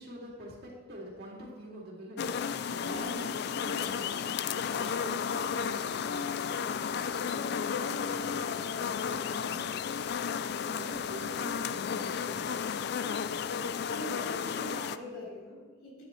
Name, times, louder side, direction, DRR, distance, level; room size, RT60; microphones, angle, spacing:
voice 1, 0.0-2.3 2.7-4.4 4.7-9.9 10.8-12.8, equal, 55° right, -3 dB, 2.3 m, -46 dB
sound 1, 2.2-15.0, left 7 dB, 55° left, 0.3 m, -33 dB
voice 2, 2.8-3.2 10.6-11.0 13.8-16.0, equal, 85° left, -6 dB, 3.3 m, -44 dB
11.5 x 9.4 x 3.1 m, 1.4 s
head